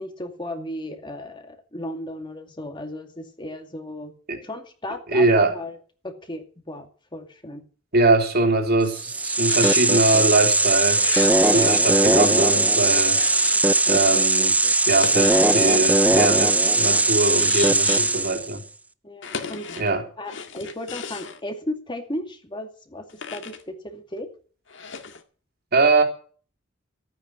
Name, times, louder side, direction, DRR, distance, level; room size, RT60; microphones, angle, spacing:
voice 1, 0.0-4.1 4.4-5.8 6.0-7.6 11.5-11.8 13.9-14.2 19.0-19.7 20.2-24.3, left 1 dB, 25° left, 2.4 m, -35 dB
voice 2, 5.1-5.5 7.9-11.1 11.4-13.2 13.9-14.6 14.8-18.6 19.8-20.0 25.7-26.0, right 2 dB, 55° right, 3.4 m, -22 dB
sound 1, 8.9-18.5, right 2 dB, 10° right, 0.6 m, -19 dB
sound 2, 9.5-9.8 10.9-11.7 12.8-13.9 14.8-15.8 17.3-18.3 19.2-19.9 20.3-21.4 23.1-23.6 24.7-25.2, left 6 dB, 70° left, 2.0 m, -35 dB
14.5 x 9.3 x 7.6 m
head